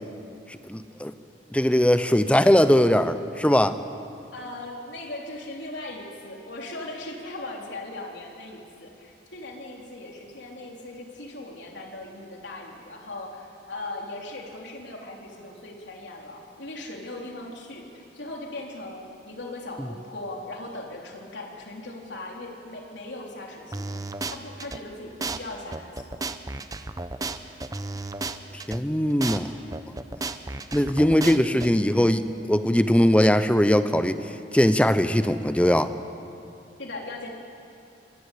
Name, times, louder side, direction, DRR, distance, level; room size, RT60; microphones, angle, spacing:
voice 1, 0.7-1.1 1.5-3.8 28.7-29.5 30.7-34.2 34.5-35.9, equal, 5° left, 11 dB, 0.7 m, -20 dB
voice 2, 4.3-24.0 24.3-26.3 36.8-37.3, left 2 dB, 80° left, 0 dB, 3.6 m, -39 dB
sound 1, 23.7-24.8 25.2-25.4 25.7-28.8 29.2-29.4 29.7-31.7, right 3 dB, 20° right, 0.8 m, -33 dB
24.5 x 19.0 x 8.5 m, 2.6 s
head